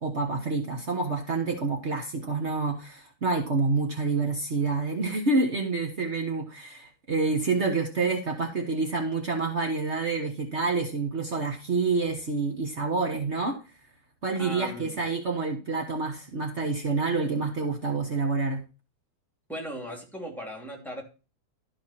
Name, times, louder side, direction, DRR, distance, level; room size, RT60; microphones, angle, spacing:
voice 1, 0.0-13.6 14.2-18.6, right 3 dB, 65° right, 2 dB, 0.6 m, -28 dB
voice 2, 14.4-15.0 19.5-21.0, equal, ahead, 0 dB, 2.3 m, -37 dB
12.5 x 5.7 x 4.2 m, 0.32 s
omnidirectional pair, 3.4 m